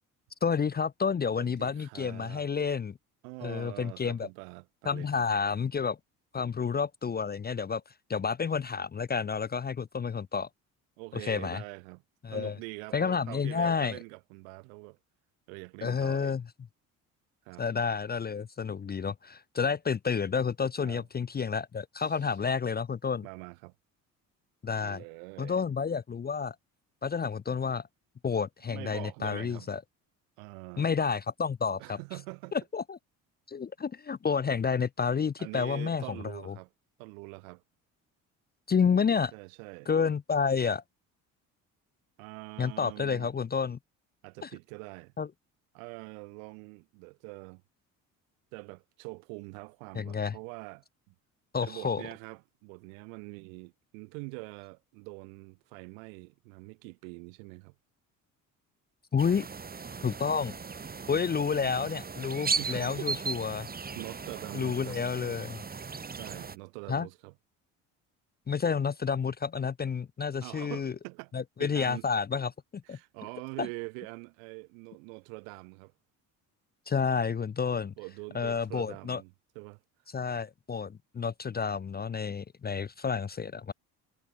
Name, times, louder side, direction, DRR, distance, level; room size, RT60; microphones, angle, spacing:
voice 1, 0.4-3.0 3.4-4.3 4.9-6.0 6.3-7.8 8.1-10.5 11.2-11.6 12.2-12.5 12.9-13.9 15.8-16.4 17.6-23.2 24.6-25.0 25.4-26.6 27.0-27.9 28.2-29.8 30.8-32.0 32.7-33.0 33.5-36.0 36.5-36.6 38.7-39.3 39.9-40.8 42.6-43.8 44.4-44.5 45.2-45.3 49.9-50.3 51.5-52.0 59.1-59.5 60.0-60.6 61.1-63.7 64.5-65.6 66.9-67.1 68.5-70.9 71.3-73.0 76.9-77.9 78.3-79.2 80.1-83.7, left 6 dB, 25° left, 0.6 m, -30 dB
voice 2, 1.4-2.5 3.2-5.3 6.3-6.4 11.0-12.0 12.3-15.0 15.5-16.4 17.4-17.7 20.8-21.1 22.0-22.3 23.2-23.7 24.8-25.6 28.7-29.7 30.4-30.9 31.8-32.6 35.4-36.7 37.0-37.6 39.3-39.9 42.2-43.3 44.2-45.1 45.7-47.6 48.5-51.1 51.6-57.8 62.6-63.1 63.4-63.6 63.9-65.0 66.1-67.3 70.4-71.3 71.6-72.1 72.8-75.9 78.0-80.1, right 37 dB, 90° right, 1.6 m, -44 dB
sound 1, 59.2-66.6, right 5 dB, 25° right, 1.3 m, -37 dB
supercardioid pair, 70°, 39 cm